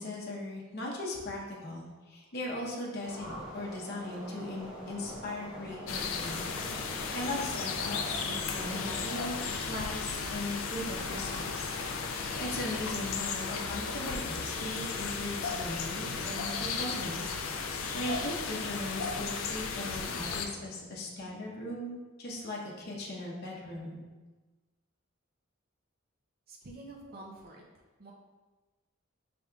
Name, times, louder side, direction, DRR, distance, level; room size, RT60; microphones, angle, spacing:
voice 1, 0.0-6.4 6.8-9.4 9.7-17.4 17.6-24.0, left 1 dB, 50° left, -3 dB, 0.8 m, -39 dB
sound 1, 3.0-9.4, equal, 5° right, 0.9 m, -45 dB
sound 2, 5.9-20.5, left 5 dB, 75° left, 0.4 m, -35 dB
voice 2, 26.5-27.6 28.0-28.1, right 2 dB, 45° right, -2 dB, 0.5 m, -48 dB
5.2 x 3.4 x 2.3 m, 1.2 s
head